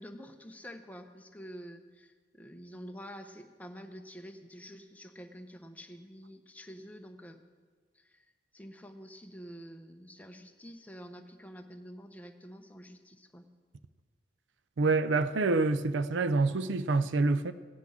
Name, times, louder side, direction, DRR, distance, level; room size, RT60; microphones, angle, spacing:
voice 1, 0.0-7.4 7.9-8.3 8.5-13.5, equal, 10° left, 0.8 m, -48 dB
voice 2, 14.8-17.5, right 3 dB, 85° right, 0.5 m, -27 dB
16.0 x 6.0 x 8.6 m
head